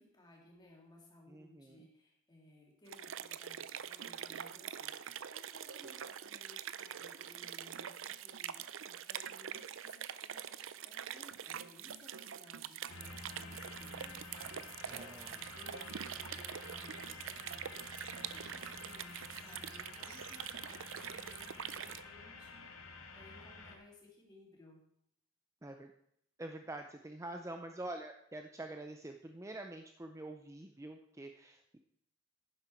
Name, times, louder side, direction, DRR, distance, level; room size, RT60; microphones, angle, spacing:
voice 1, 0.0-22.8 23.1-24.8, left 2 dB, 20° left, -1 dB, 3.0 m, -60 dB
voice 2, 1.3-1.8 14.9-15.4 25.6-25.9 26.4-31.8, right 2 dB, 15° right, 5 dB, 0.5 m, -46 dB
sound 1, 2.9-22.0, right 9 dB, 65° right, 0.5 m, -45 dB
sound 2, 12.9-23.8, left 3 dB, 90° left, 1.9 m, -50 dB
11.0 x 10.5 x 4.4 m, 0.73 s
head